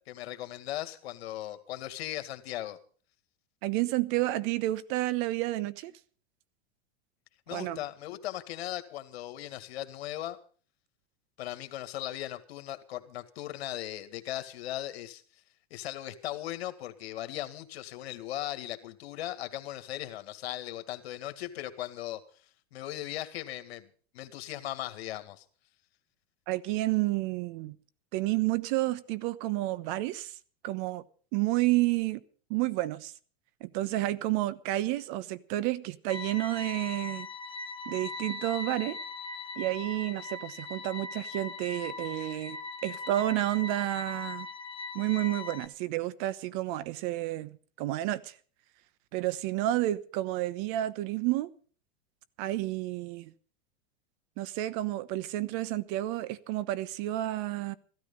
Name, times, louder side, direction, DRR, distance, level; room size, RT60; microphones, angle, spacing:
voice 1, 0.0-2.8 7.5-10.4 11.4-15.2 15.7-22.2 22.7-23.9 24.1-25.4, left 13 dB, 75° left, 2.0 m, -38 dB
voice 2, 3.6-5.9 7.5-7.8 26.5-27.8 28.1-30.3 30.6-31.0 31.3-32.2 32.5-33.1 33.6-37.3 37.9-39.0 39.6-44.5 44.9-48.3 49.1-51.5 52.4-53.3 54.4-57.7, right 16 dB, 55° right, 1.1 m, -30 dB
sound 1, 36.1-45.7, left 3 dB, 15° left, 1.3 m, -40 dB
15.0 x 13.0 x 5.5 m
hypercardioid pair, 115°, 31 cm